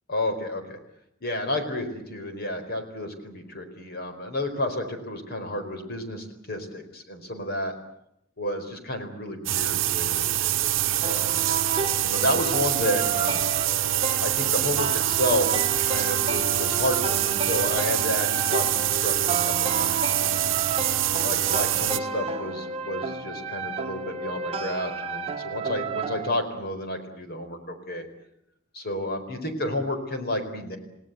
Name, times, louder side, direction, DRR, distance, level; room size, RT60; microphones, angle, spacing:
voice 1, 0.1-0.8 1.2-7.7 8.4-11.7 12.0-13.5 14.2-15.5 15.8-19.4 19.8-20.0 21.2-28.0 28.7-30.8, left 1 dB, 50° left, 6 dB, 4.6 m, -31 dB
sound 1, 9.5-22.0, right 13 dB, 65° right, 0.9 m, -25 dB
sound 2, 11.0-26.3, right 4 dB, 30° right, 1.4 m, -32 dB
29.5 x 18.0 x 8.2 m, 0.79 s
head